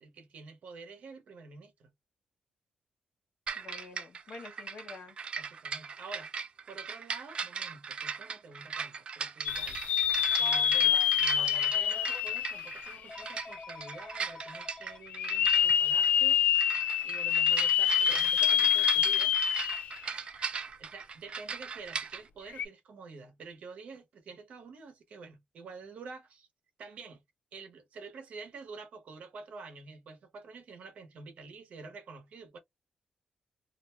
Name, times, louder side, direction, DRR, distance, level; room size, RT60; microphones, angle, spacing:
voice 1, 0.0-1.9 5.4-6.3 6.7-9.8 10.3-16.4 17.0-19.3 20.8-26.5 26.8-27.2 27.5-32.6, right 4 dB, 65° right, 0.9 m, -48 dB
sound 1, 3.5-22.2, right 6 dB, 45° right, 0.4 m, -38 dB
voice 2, 3.6-5.2, left 4 dB, 55° left, 0.8 m, -47 dB
sound 2, 9.5-13.4 13.9-14.0 15.1-20.1 20.4-20.5 22.5-22.7, left 9 dB, 80° left, 0.3 m, -26 dB
Telephone, 10.3-12.2 13.1-15.0 16.3-16.5 18.0-18.2, left 3 dB, 25° left, 0.5 m, -46 dB
2.5 x 2.1 x 3.1 m
wide cardioid pair, 135°, 3 cm